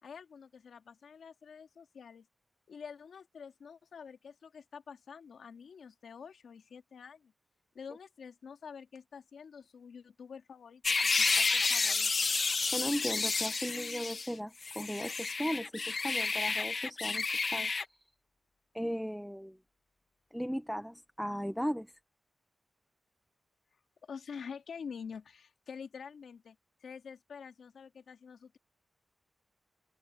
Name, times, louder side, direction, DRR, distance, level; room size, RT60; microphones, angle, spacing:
voice 1, 0.0-2.3 2.7-7.3 7.7-12.3 24.0-28.6, left 6 dB, 85° left, 2.6 m, -48 dB
sound 1, 10.8-14.3 14.6-17.8, left 4 dB, 40° left, 0.9 m, -31 dB
voice 2, 12.7-18.0 18.7-19.6 20.3-21.9, equal, ahead, 0.8 m, -37 dB
wide cardioid pair, 140°, 0 cm